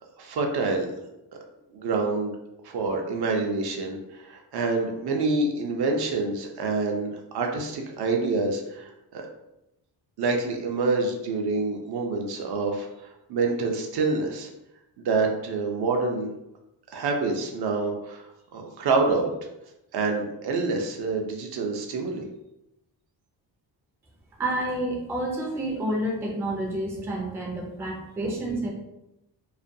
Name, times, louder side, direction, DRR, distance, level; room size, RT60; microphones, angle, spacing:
voice 1, 0.2-0.9 1.7-2.3 2.6-9.2 10.2-14.5 15.0-16.3 16.9-18.3 18.5-19.3 19.9-22.2, right 3 dB, 65° right, 2 dB, 0.5 m, -27 dB
voice 2, 24.4-28.7, right 1 dB, 5° right, -2 dB, 0.3 m, -29 dB
2.4 x 2.2 x 2.6 m, 0.90 s
wide cardioid pair, 145°, 42 cm